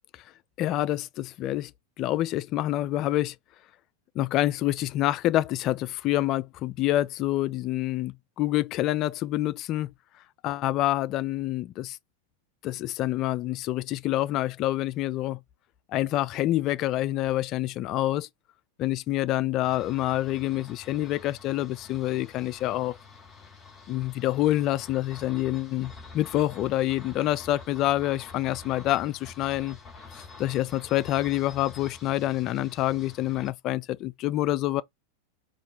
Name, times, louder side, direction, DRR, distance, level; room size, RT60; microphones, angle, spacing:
voice 1, 0.6-1.7 2.0-3.3 4.2-9.9 10.4-12.0 12.6-15.4 15.9-18.3 18.8-23.0 23.9-29.8 30.4-34.8, left 15 dB, 35° left, 0.3 m, -27 dB
sound 1, 19.6-33.5, left 4 dB, 20° left, 1.6 m, -47 dB
4.2 x 2.6 x 3.2 m
figure-of-eight pair, 90°, 0 cm